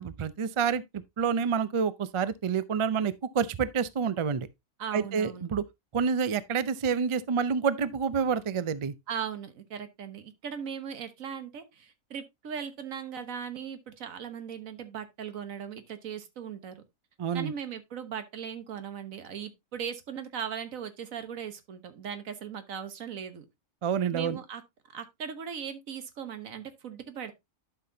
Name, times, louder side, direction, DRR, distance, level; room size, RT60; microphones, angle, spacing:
voice 1, 0.0-4.5 4.9-5.6 5.9-8.9 17.2-17.5 23.8-24.4, right 6 dB, 55° right, 0.3 m, -28 dB
voice 2, 4.8-5.5 9.1-16.8 17.3-23.4 24.1-24.6 24.9-27.3, right 7 dB, 85° right, 1.5 m, -38 dB
11.0 x 5.8 x 2.7 m
omnidirectional pair, 1.4 m